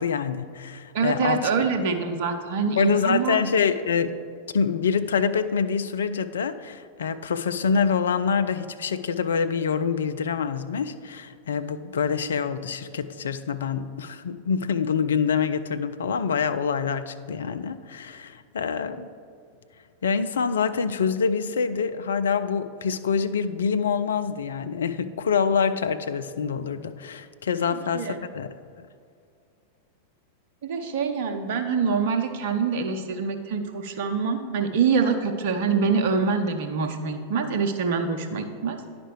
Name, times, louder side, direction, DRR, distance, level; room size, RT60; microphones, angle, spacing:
voice 1, 0.0-1.4 1.8-1.9 2.8-4.1 4.5-19.1 20.0-28.9, left 6 dB, 65° left, 11 dB, 0.4 m, -26 dB
voice 2, 0.9-3.4 27.7-28.2 30.6-38.9, right 5 dB, 55° right, 7 dB, 0.7 m, -25 dB
10.0 x 5.1 x 4.7 m, 2.3 s
figure-of-eight pair, 90°, 0 cm